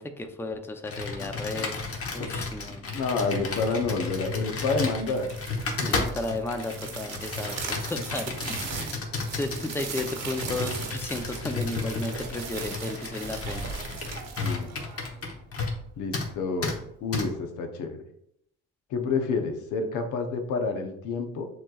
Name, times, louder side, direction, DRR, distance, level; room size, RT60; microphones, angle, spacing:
voice 1, 0.0-1.8 2.1-2.8 5.9-8.4 8.6-9.1 9.4-13.6, left 2 dB, 10° left, 6 dB, 0.5 m, -34 dB
Computer keyboard, 0.8-15.8 16.1-16.3 16.6-16.8 17.1-17.3, left 3 dB, 50° left, 1.1 m, -33 dB
voice 2, 2.7-5.3 5.8-5.9 14.4-14.8 16.0-18.0 18.9-21.5, left 4 dB, 85° left, 5 dB, 0.8 m, -29 dB
sound 1, 5.0-15.4, right 5 dB, 60° right, 0.9 m, -38 dB
7.0 x 3.1 x 2.3 m, 0.74 s
cardioid pair, 90°, 30 cm